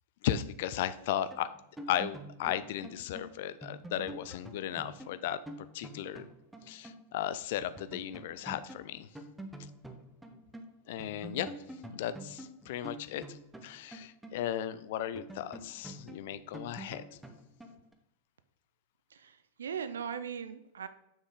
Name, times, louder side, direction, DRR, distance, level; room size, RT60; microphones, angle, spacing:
voice 1, 0.2-1.5 1.9-6.3 6.7-9.1 10.9-11.5 11.9-17.0, left 11 dB, 50° left, 14 dB, 0.4 m, -36 dB
sound 1, 1.3-7.1 7.3-7.4 7.8-10.7 11.0-14.7 15.2-17.9, right 1 dB, 5° right, 0.9 m, -47 dB
voice 2, 19.2-20.9, right 7 dB, 65° right, 13 dB, 0.6 m, -39 dB
7.3 x 6.2 x 3.8 m, 0.86 s
figure-of-eight pair, 90°, 0 cm